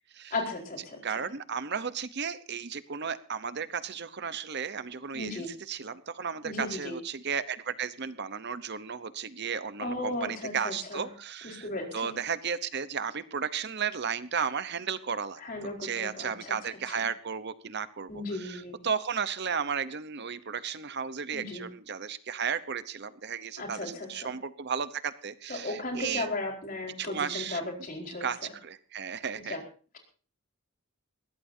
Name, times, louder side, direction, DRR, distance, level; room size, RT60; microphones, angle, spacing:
voice 1, 0.3-1.0 5.1-5.5 6.4-6.9 9.8-11.1 11.4-12.1 15.4-17.1 18.1-18.8 21.3-21.7 23.6-24.3 25.5-28.3 29.3-29.6, left 2 dB, 45° left, 1 dB, 4.6 m, -36 dB
voice 2, 1.0-11.7 11.9-26.3 27.0-27.6 28.2-29.6, right 6 dB, 55° right, 13 dB, 0.9 m, -34 dB
22.0 x 16.5 x 2.7 m, 0.39 s
head